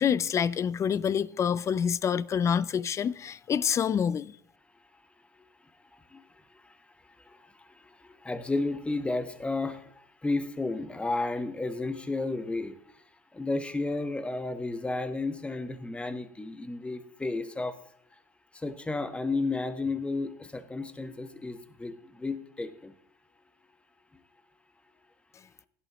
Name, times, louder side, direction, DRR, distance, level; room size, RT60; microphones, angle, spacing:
voice 1, 0.0-4.3, left 7 dB, 30° left, 0.4 m, -27 dB
voice 2, 5.9-13.0 13.3-17.8 18.5-23.0, left 3 dB, 10° left, 1.2 m, -33 dB
16.0 x 11.0 x 3.0 m
supercardioid pair, 105°, 10 cm